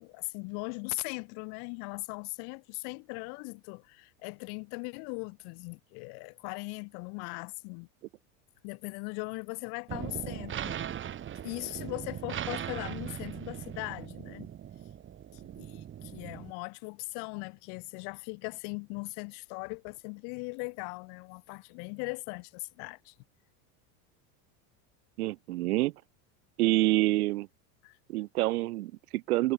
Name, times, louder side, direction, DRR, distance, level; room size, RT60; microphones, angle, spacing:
voice 1, 0.0-7.9 8.6-10.8 11.4-14.5 15.3-23.1 27.8-28.0, left 39 dB, 60° left, 4.8 m, -39 dB
sound 1, 9.9-16.5, right 10 dB, 25° right, 2.5 m, -39 dB
voice 2, 25.2-25.9 26.6-27.5 28.1-29.5, right 18 dB, 90° right, 1.7 m, -27 dB
supercardioid pair, 145°, 43 cm